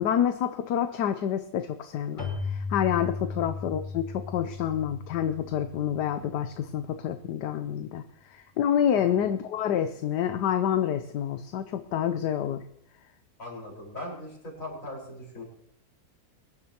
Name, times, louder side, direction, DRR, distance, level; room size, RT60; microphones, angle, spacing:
voice 1, 0.0-8.0 8.3-12.6, left 9 dB, 80° left, 9 dB, 1.3 m, -28 dB
Keyboard (musical), 2.2-6.7, left 4 dB, 30° left, 3.0 m, -37 dB
voice 2, 13.4-15.4, left 1 dB, 50° left, -3 dB, 5.3 m, -40 dB
23.5 x 10.5 x 2.9 m, 0.73 s
omnidirectional pair, 1.8 m